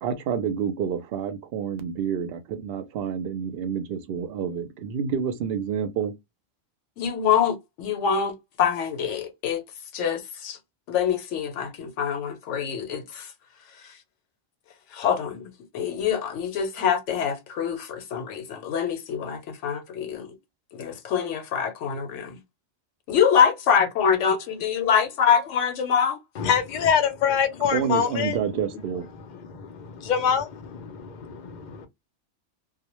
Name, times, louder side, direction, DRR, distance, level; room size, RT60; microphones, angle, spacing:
voice 1, 0.0-6.1 27.7-29.1, right 7 dB, 65° right, 0.7 m, -28 dB
voice 2, 7.0-9.6 9.9-10.6 10.9-13.3 13.8-13.9 14.9-20.4 20.7-22.4 23.1-26.2 28.5-28.7, left 7 dB, 80° left, 0.9 m, -25 dB
voice 3, 26.4-28.4 29.2-31.9, left 7 dB, 55° left, 0.5 m, -25 dB
2.1 x 2.1 x 2.9 m
omnidirectional pair, 1.2 m